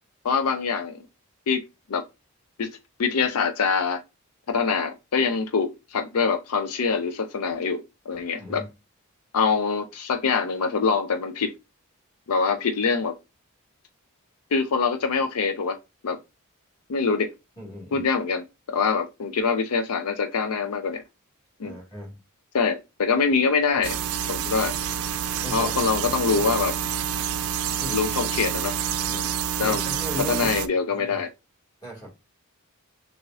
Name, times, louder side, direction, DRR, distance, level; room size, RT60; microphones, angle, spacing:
voice 1, 0.2-1.0 1.5-1.6 1.9-2.0 2.6-2.7 3.0-4.0 4.5-7.8 8.1-8.6 9.3-11.5 12.3-13.1 14.5-15.8 16.0-16.2 16.9-17.3 17.9-21.0 21.6-21.8 22.5-24.0 24.3-24.7 25.5-26.7 27.9-28.7 29.1-29.3 29.6-29.8 30.3-31.3, left 5 dB, 75° left, 0.5 m, -24 dB
voice 2, 8.4-8.7 17.6-18.1 21.6-22.2 25.4-25.7 26.1-26.5 27.8-28.1 29.6-30.6 30.9-31.2 31.8-32.1, left 1 dB, 20° left, 2.0 m, -37 dB
sound 1, 23.8-30.7, right 9 dB, 70° right, 0.4 m, -28 dB
6.3 x 2.5 x 2.5 m
head